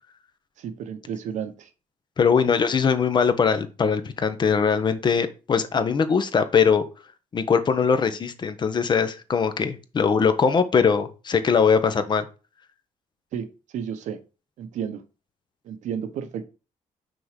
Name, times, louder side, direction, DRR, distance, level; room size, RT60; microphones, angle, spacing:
voice 1, 0.6-1.7 2.4-2.5 13.3-13.5 13.7-14.2 14.6-15.0 15.6-16.4, right 8 dB, 80° right, 8 dB, 1.2 m, -32 dB
voice 2, 2.2-6.8 7.3-12.3, left 6 dB, 35° left, 10 dB, 0.9 m, -21 dB
6.1 x 4.7 x 5.1 m, 0.32 s
cardioid pair, 130°, 13 cm